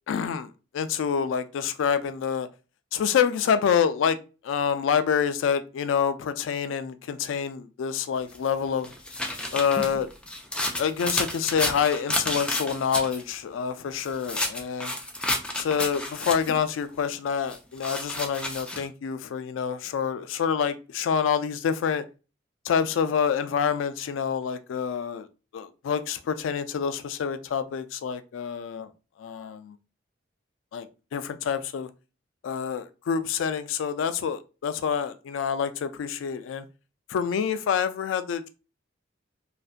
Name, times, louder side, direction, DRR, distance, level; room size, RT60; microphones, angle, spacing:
voice 1, 0.1-2.5 2.9-4.2 4.4-8.9 9.5-10.1 10.6-14.9 15.6-22.0 22.6-25.3 25.5-28.9 29.2-29.8 30.7-31.9 32.4-36.7 37.1-38.5, left 7 dB, 85° left, 0.3 m, -27 dB
sound 1, 8.3-13.2 13.9-16.6 17.5-18.8, left 1 dB, 5° left, 0.3 m, -31 dB
2.5 x 2.1 x 2.4 m
head